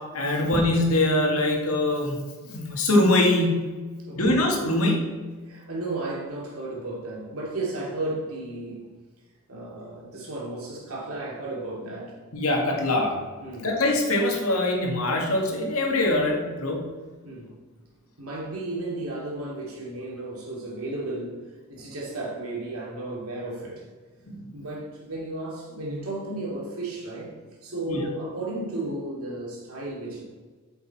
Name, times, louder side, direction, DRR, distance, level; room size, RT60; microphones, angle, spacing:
voice 1, 0.1-2.2 2.5-3.7 4.2-5.1 12.3-13.2 13.6-16.9 24.3-24.5 27.9-28.0, left 1 dB, 85° left, 1.9 m, -23 dB
voice 2, 4.0-4.4 5.5-8.9 9.5-12.2 13.4-13.7 17.2-17.5 18.2-23.9 24.5-27.4 27.6-30.2, right 2 dB, 85° right, 2.7 m, -34 dB
8.8 x 6.8 x 4.2 m
head